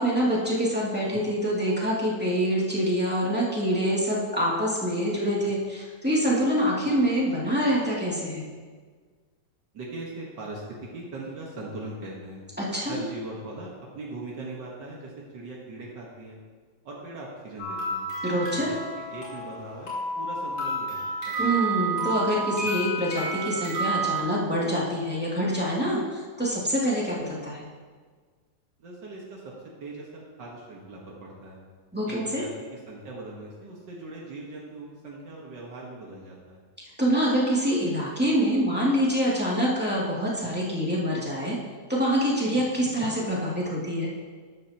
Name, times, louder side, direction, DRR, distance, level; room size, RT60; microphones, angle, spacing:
voice 1, 0.0-8.5 12.6-13.0 18.2-18.7 21.4-27.7 31.9-32.4 37.0-41.6 41.9-44.1, equal, 5° right, -7 dB, 2.5 m, -25 dB
voice 2, 9.7-12.4 12.9-16.4 16.8-18.1 18.5-18.8 19.1-21.4 28.8-29.5 29.8-31.6 32.1-36.6, right 2 dB, 80° right, -3 dB, 2.1 m, -40 dB
sound 1, 17.6-24.2, right 2 dB, 75° left, 3.7 m, -30 dB
13.0 x 11.5 x 3.0 m, 1.5 s
omnidirectional pair, 1.9 m